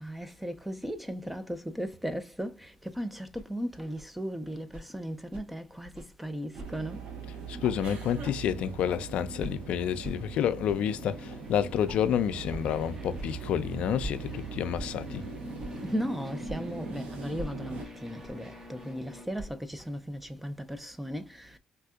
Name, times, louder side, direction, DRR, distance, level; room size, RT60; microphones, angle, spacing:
voice 1, 0.0-7.0 15.8-21.6, equal, 5° right, 0.4 m, -36 dB
sound 1, 3.3-3.5 3.9-4.1 4.7-4.9 5.3-5.4 5.9-6.1 6.6-6.7 7.0-7.1 7.6-7.7 8.2-8.4 8.8-9.0 9.4-9.5 10.0-10.2 10.7-10.8 11.3-11.4 11.9-12.0 12.5-12.6 13.1-13.3 14.0-14.1 14.7-14.9 15.6-15.7 16.4-16.6 17.4-17.5 18.2-18.3 19.3-19.6, right 1 dB, 55° right, 1.8 m, -41 dB
sound 2, 6.5-17.9, right 5 dB, 70° right, 0.8 m, -41 dB
voice 2, 7.5-15.2, left 9 dB, 70° left, 0.3 m, -29 dB
sound 3, 7.7-19.2, equal, 25° right, 0.9 m, -47 dB
3.3 x 2.7 x 2.3 m
supercardioid pair, 80°, 2 cm